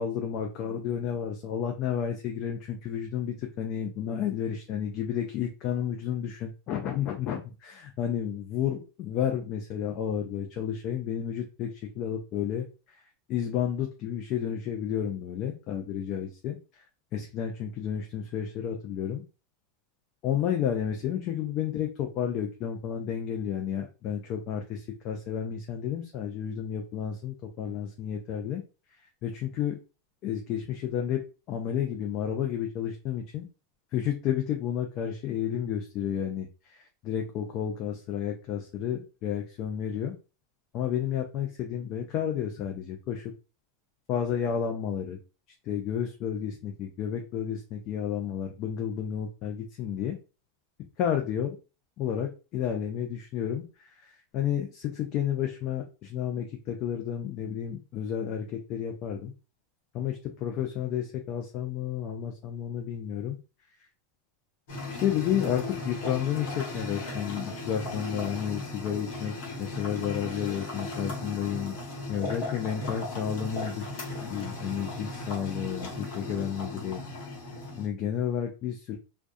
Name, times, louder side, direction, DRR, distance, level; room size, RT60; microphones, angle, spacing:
voice 1, 0.0-16.9 17.1-19.2 20.2-28.6 29.2-29.8 30.2-31.2 31.5-33.5 33.9-40.1 40.7-43.3 44.1-45.2 45.6-50.2 51.0-51.5 52.0-59.3 59.9-63.4 64.9-71.7 72.1-77.0 77.8-79.0, left 9 dB, 45° left, 3 dB, 0.4 m, -31 dB
sound 1, 64.7-77.9, left 2 dB, 70° left, 1.1 m, -37 dB
2.3 x 2.2 x 2.6 m, 0.32 s
hypercardioid pair, 110°, 0 cm